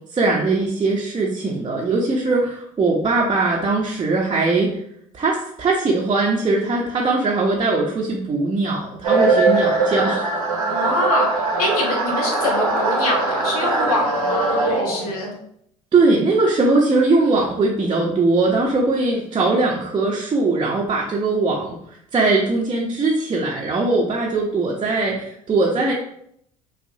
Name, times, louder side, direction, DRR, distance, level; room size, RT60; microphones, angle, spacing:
voice 1, 0.1-4.8 5.1-10.2 10.7-10.9 15.9-21.8 22.1-25.9, right 3 dB, 25° right, -3 dB, 0.8 m, -20 dB
sound 1, 9.0-15.2, right 3 dB, 90° right, 1.0 m, -21 dB
voice 2, 10.7-11.3 11.6-15.3, left 2 dB, 75° left, 0 dB, 1.0 m, -24 dB
5.2 x 2.4 x 2.7 m, 0.70 s
hypercardioid pair, 60°, 18 cm